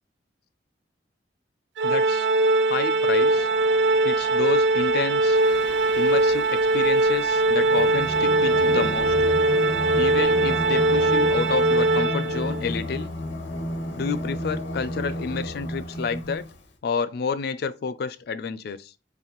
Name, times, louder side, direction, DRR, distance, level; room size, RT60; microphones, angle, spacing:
voice 1, 1.8-2.3 2.7-3.5 4.0-5.4 6.0-9.1 10.0-13.1 14.0-16.5 16.8-18.9, left 5 dB, 55° left, 0.3 m, -30 dB
Organ, 1.8-12.6, right 2 dB, 70° right, 0.3 m, -21 dB
sound 1, 3.1-11.1, right 1 dB, 90° right, 0.9 m, -43 dB
Singing, 5.3-16.7, left 1 dB, 75° left, 0.8 m, -32 dB
4.0 x 3.2 x 2.9 m
head